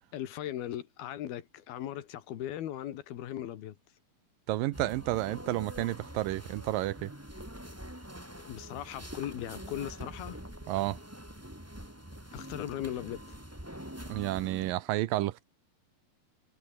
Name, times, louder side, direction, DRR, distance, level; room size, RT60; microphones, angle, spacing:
voice 1, 0.1-4.0 8.4-10.4 12.3-13.4, left 12 dB, 90° left, 3.6 m, -38 dB
voice 2, 4.5-7.1 10.7-11.0 14.1-15.4, right 16 dB, 80° right, 2.3 m, -31 dB
sound 1, 4.7-14.7, equal, 5° right, 4.5 m, -45 dB
omnidirectional pair, 4.3 m